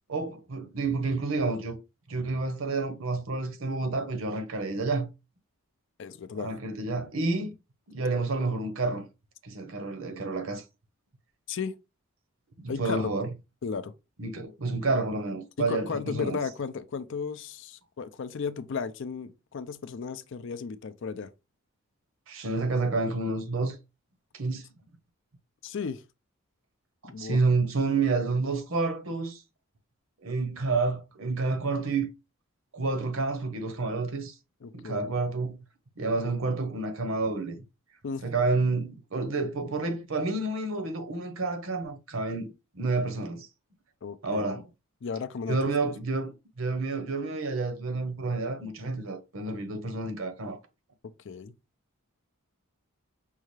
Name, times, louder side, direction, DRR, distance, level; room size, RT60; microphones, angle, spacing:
voice 1, 0.1-1.8 2.1-5.1 6.4-7.5 7.9-9.1 9.4-10.6 12.6-13.3 14.2-16.4 22.3-23.8 24.3-24.6 27.0-29.4 30.2-32.1 32.7-34.3 34.7-35.6 36.0-37.6 38.2-42.5 42.7-43.5 44.2-44.6 45.5-50.6, right 3 dB, 65° right, 0.8 m, -29 dB
voice 2, 6.0-6.5 11.5-11.7 12.7-13.1 13.6-13.9 15.6-21.3 25.6-26.0 27.0-27.4 34.6-35.1 38.0-38.2 44.0-44.5 45.0-45.9 51.2-51.5, left 5 dB, 55° left, 0.4 m, -35 dB
5.5 x 2.4 x 3.1 m
head